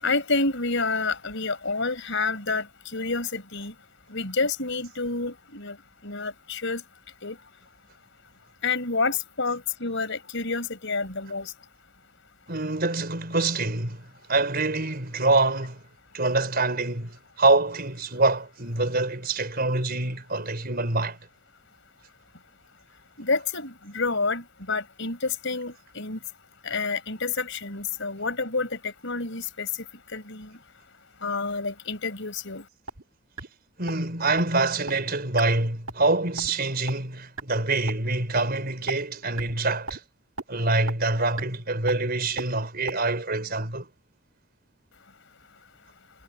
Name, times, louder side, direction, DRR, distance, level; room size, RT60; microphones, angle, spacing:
voice 1, 0.0-2.7 2.9-3.7 4.1-5.8 6.0-6.8 7.2-7.4 8.6-11.5 23.2-26.2 26.6-29.7 30.1-30.6 31.2-32.6, left 3 dB, 60° left, 6.1 m, -29 dB
voice 2, 12.5-14.0 14.3-15.8 16.1-21.2 33.8-40.0 40.5-43.9, right 2 dB, 45° right, 4.7 m, -25 dB
sound 1, 32.9-33.0 33.4-33.5 33.9-34.0 34.4-34.5 34.9-35.0 35.4-35.5 35.9-36.1 36.4-36.5 36.9-37.0 37.4-37.5 37.9-38.0 38.4-38.5 38.9-39.0 39.4-39.6 39.9-40.0 40.4-40.5 40.9-41.0 41.4-41.5 41.9-42.0 42.4-42.5 42.9-43.0, right 2 dB, 70° right, 1.8 m, -32 dB
head